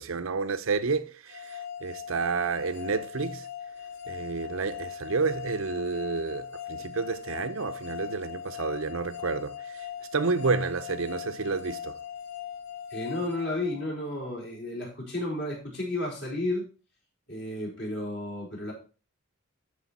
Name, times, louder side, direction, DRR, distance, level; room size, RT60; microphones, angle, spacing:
voice 1, 0.0-3.5 4.1-9.9 10.1-12.0, right 4 dB, 75° right, 0.7 m, -30 dB
sound 1, 1.3-14.2, left 9 dB, 80° left, 1.6 m, -40 dB
voice 2, 12.9-16.7 17.3-18.7, left 1 dB, 55° left, 4.4 m, -32 dB
12.5 x 4.8 x 4.2 m
head